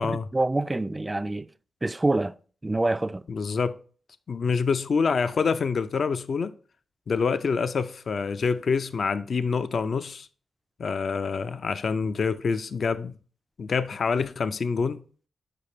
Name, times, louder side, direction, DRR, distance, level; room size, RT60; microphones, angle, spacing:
voice 1, 0.0-1.5 1.8-2.4 2.6-3.2, right 2 dB, 20° right, 0.3 m, -26 dB
voice 2, 3.3-3.8 4.3-6.5 7.1-10.3 10.8-13.1 13.6-15.0, left 5 dB, 60° left, 0.4 m, -26 dB
6.6 x 4.9 x 3.2 m
supercardioid pair, 45°, 0 cm